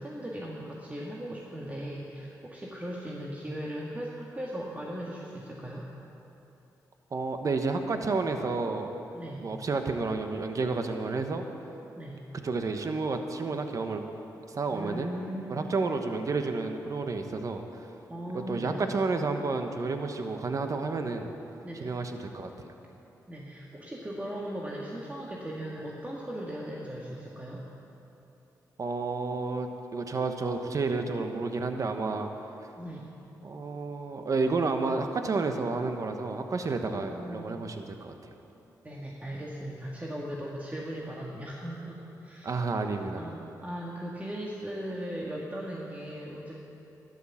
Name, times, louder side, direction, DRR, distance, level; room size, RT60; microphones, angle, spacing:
voice 1, 0.0-5.9 9.1-9.5 12.0-12.2 14.7-15.7 18.1-18.9 21.6-21.9 23.3-27.7 32.8-33.1 36.9-37.5 38.8-42.7 43.1-46.7, equal, 20° right, -3 dB, 1.9 m, -38 dB
voice 2, 7.1-8.9 9.4-11.4 12.4-14.0 14.5-15.1 15.5-17.6 18.3-21.3 21.8-22.7 28.8-32.3 33.4-38.1 42.4-43.2, right 3 dB, 50° right, 6 dB, 1.2 m, -30 dB
13.0 x 11.5 x 7.3 m, 3.0 s
cardioid pair, 65°, 7 cm